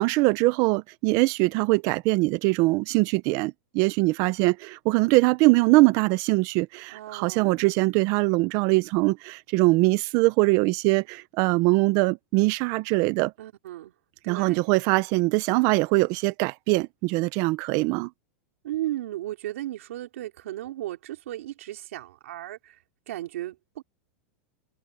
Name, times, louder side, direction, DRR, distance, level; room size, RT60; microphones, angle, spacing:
voice 1, 0.0-13.3 14.3-18.1, right 23 dB, 50° right, 0.8 m, -22 dB
voice 2, 6.9-7.7 13.4-13.9 14.2-14.6 18.6-22.8 23.1-23.8, right 14 dB, 80° right, 4.3 m, -35 dB
supercardioid pair, 140°, 7 cm